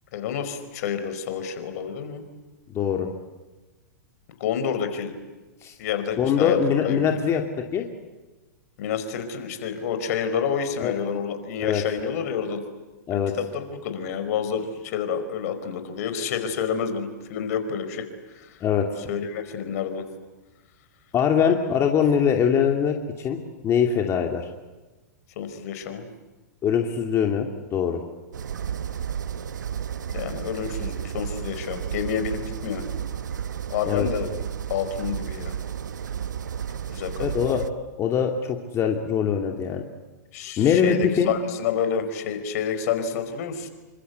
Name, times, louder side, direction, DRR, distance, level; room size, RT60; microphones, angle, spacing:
voice 1, 0.1-2.2 4.4-5.1 5.8-6.6 6.8-7.1 8.8-12.6 13.1-18.1 18.3-18.6 19.1-20.0 25.4-26.0 30.1-32.8 33.7-34.3 34.7-35.5 36.9-37.3 40.3-43.7, left 7 dB, 60° left, 9 dB, 4.8 m, -29 dB
voice 2, 2.7-3.1 5.6-5.7 6.2-7.4 7.7-7.9 10.8-10.9 11.6-11.8 13.1-13.3 18.6-18.9 21.1-23.4 23.6-24.5 26.6-28.0 33.9-34.1 37.2-37.6 38.0-39.8 40.6-41.3, left 7 dB, 30° left, 2 dB, 2.7 m, -22 dB
sound 1, 28.3-37.7, right 8 dB, 80° right, 1.2 m, -32 dB
28.0 x 25.0 x 8.2 m, 1.2 s
hypercardioid pair, 115°, 10 cm